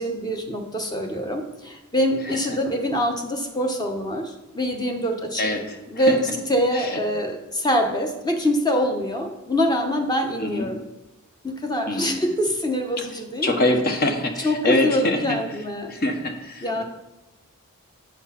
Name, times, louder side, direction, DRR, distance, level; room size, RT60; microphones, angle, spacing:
voice 1, 0.0-5.5 5.9-10.8 11.4-13.6 14.4-15.9 16.6-16.8, equal, 20° left, 3 dB, 0.9 m, -24 dB
voice 2, 2.3-2.6 5.4-5.8 6.1-6.2 6.7-7.0 10.4-10.7 11.9-12.3 13.4-15.4 15.9-16.8, left 1 dB, 45° left, 4 dB, 1.0 m, -24 dB
8.2 x 4.6 x 5.7 m, 0.98 s
head